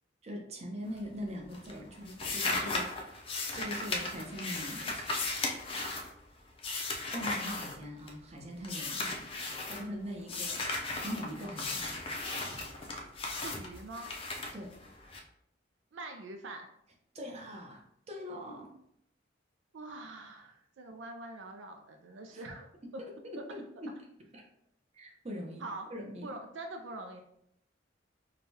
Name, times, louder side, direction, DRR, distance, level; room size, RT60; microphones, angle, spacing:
voice 1, 0.2-2.9 3.5-5.0 7.1-9.3 9.6-12.0 12.5-12.6 14.5-14.7 17.1-18.7 22.3-22.4 23.0-24.0 24.3-24.4 24.9-25.6 25.9-26.3, equal, 35° right, 1 dB, 0.7 m, -42 dB
sound 1, 0.8-1.3 1.5-8.3 8.6-9.8 10.3-15.2, left 2 dB, 30° left, 0.5 m, -36 dB
voice 2, 13.3-14.1 15.9-16.7 19.7-22.7 22.9-23.0 25.6-25.9 26.2-27.2, right 2 dB, 85° right, 4 dB, 0.4 m, -44 dB
4.8 x 2.3 x 2.7 m, 0.73 s
head